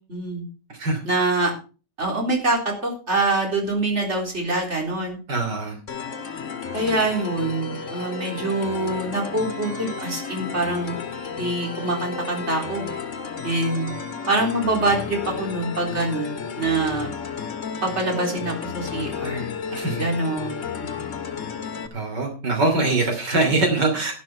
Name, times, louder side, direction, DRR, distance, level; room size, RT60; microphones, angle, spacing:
voice 1, 0.1-0.4 1.0-1.5 2.0-5.2 6.7-10.9 11.4-12.9 13.4-13.9 14.3-17.1 17.8-19.5 20.0-20.6 20.9-21.1, right 2 dB, 40° right, 1 dB, 4.2 m, -25 dB
voice 2, 0.7-1.0 5.3-5.8 19.7-20.1 21.9-24.1, right 2 dB, 75° right, 4 dB, 3.6 m, -23 dB
sound 1, 5.9-21.9, left 6 dB, 45° left, 1.7 m, -32 dB
12.0 x 12.0 x 4.4 m, 0.34 s
omnidirectional pair, 1.9 m